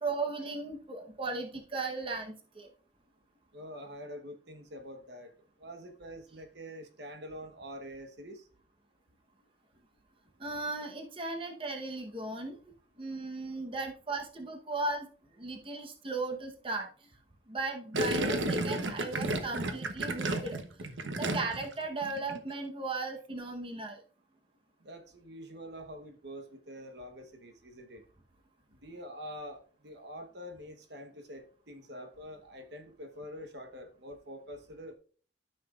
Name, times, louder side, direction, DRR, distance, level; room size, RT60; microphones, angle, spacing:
voice 1, 0.0-2.7 10.4-12.6 13.0-15.1 15.4-16.9 17.5-20.6 21.2-24.0, right 3 dB, 30° right, 2 dB, 1.0 m, -36 dB
voice 2, 3.5-5.3 5.6-8.5 24.8-28.0 28.8-35.0, equal, 65° right, 5 dB, 1.1 m, -46 dB
Gurgling, 17.9-21.7 22.0-22.4, right 1 dB, 90° right, 0.9 m, -32 dB
13.0 x 5.9 x 2.4 m, 0.42 s
head